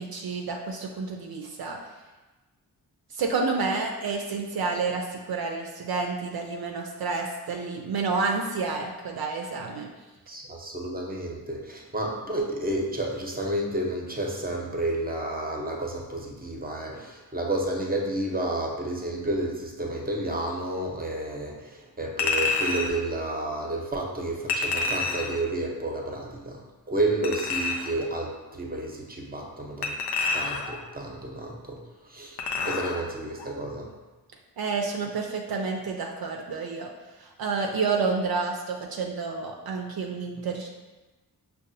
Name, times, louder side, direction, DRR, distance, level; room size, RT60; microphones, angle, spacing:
voice 1, 0.0-1.8 3.1-9.9 34.6-36.9 37.2-40.7, right 4 dB, 65° right, 2 dB, 0.5 m, -29 dB
voice 2, 10.3-30.0 30.3-33.9, right 1 dB, 25° right, 0 dB, 0.7 m, -31 dB
Chink clink, 22.2-23.0 24.5-25.4 27.2-28.0 29.8-30.8 32.4-33.0 33.4-33.5, left 3 dB, 80° left, 0.6 m, -28 dB
5.3 x 2.3 x 2.6 m, 1.2 s
cardioid pair, 55°, 39 cm